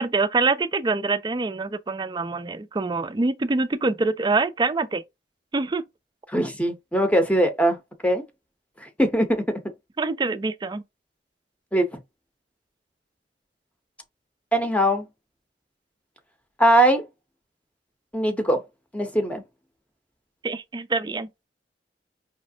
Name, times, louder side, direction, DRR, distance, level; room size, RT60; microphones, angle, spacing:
voice 1, 0.0-5.0 5.5-5.8 10.0-10.8 20.4-21.3, right 3 dB, 25° right, 0.4 m, -25 dB
voice 2, 6.3-7.8 8.0-8.2 8.8-9.6 11.7-11.9 14.5-15.0 16.6-17.0 18.1-18.6 18.9-19.4, right 1 dB, 10° left, 0.7 m, -21 dB
5.0 x 3.1 x 2.7 m
head